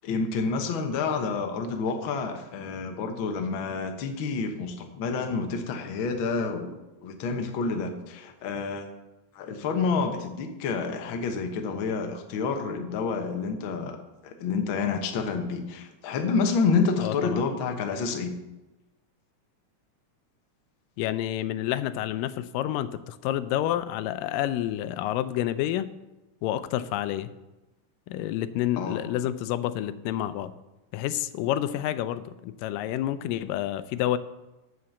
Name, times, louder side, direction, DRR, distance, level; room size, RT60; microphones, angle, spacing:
voice 1, 0.0-8.9 9.3-14.0 14.2-18.3 28.8-29.0, left 4 dB, 70° left, 4 dB, 1.2 m, -29 dB
voice 2, 17.0-17.4 21.0-25.9 26.4-27.3 28.1-30.5 30.9-34.2, left 12 dB, 85° left, 13 dB, 2.2 m, -29 dB
7.9 x 7.1 x 7.0 m, 1.0 s
omnidirectional pair, 3.9 m